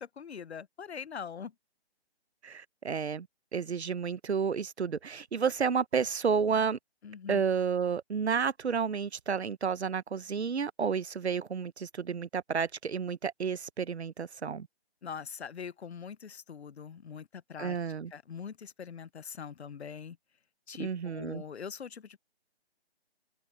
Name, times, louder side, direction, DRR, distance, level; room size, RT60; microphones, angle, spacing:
voice 1, 0.0-1.5 7.0-7.4 15.0-17.8 18.1-20.2 20.7-22.2, left 7 dB, 75° left, 0.8 m, -42 dB
voice 2, 2.4-3.3 3.5-6.8 7.3-14.7 17.6-18.1 20.8-21.4, right 6 dB, 75° right, 1.1 m, -31 dB
hypercardioid pair, 180°, 33 cm